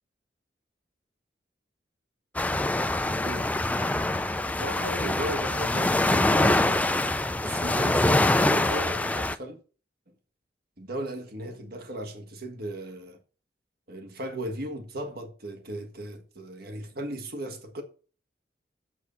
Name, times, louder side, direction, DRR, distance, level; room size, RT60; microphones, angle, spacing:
sound 1, 2.3-9.4, left 2 dB, 10° left, 0.4 m, -24 dB
voice 1, 3.2-3.5 4.6-7.0 7.4-9.6 10.8-13.2 13.9-17.8, right 1 dB, 55° right, 1.5 m, -36 dB
6.9 x 6.3 x 6.8 m
head